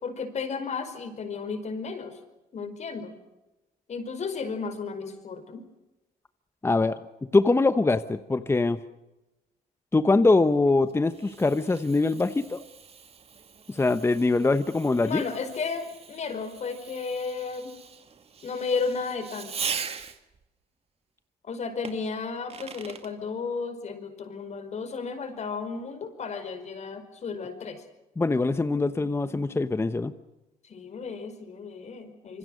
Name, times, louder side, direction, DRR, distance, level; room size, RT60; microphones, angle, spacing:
voice 1, 0.0-2.2 2.5-3.2 3.9-5.6 15.0-17.7 18.4-19.6 21.4-27.8 30.6-32.4, left 5 dB, 40° left, 9 dB, 5.2 m, -33 dB
voice 2, 6.6-7.0 7.3-8.8 9.9-12.6 13.7-15.2 28.2-30.1, left 3 dB, 15° left, 11 dB, 1.0 m, -23 dB
Fireworks, 10.5-20.4 21.8-23.1, right 6 dB, 35° right, 2.2 m, -41 dB
27.0 x 24.5 x 6.5 m, 0.99 s
cardioid pair, 110°, 17 cm